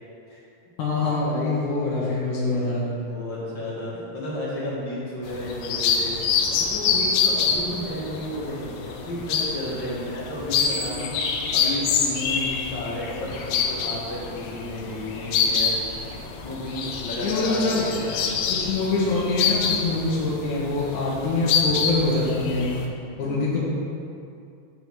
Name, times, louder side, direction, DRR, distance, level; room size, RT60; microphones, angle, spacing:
voice 1, 0.8-2.9 17.2-17.9 18.5-22.7 23.2-23.6, left 3 dB, 65° left, -8 dB, 2.8 m, -24 dB
voice 2, 2.5-6.2 6.5-15.8 16.4-18.5, left 1 dB, 40° left, -7 dB, 2.0 m, -33 dB
sound 1, 5.3-22.9, left 6 dB, 80° left, 2.3 m, -26 dB
8.9 x 6.4 x 4.7 m, 2.5 s
omnidirectional pair, 4.0 m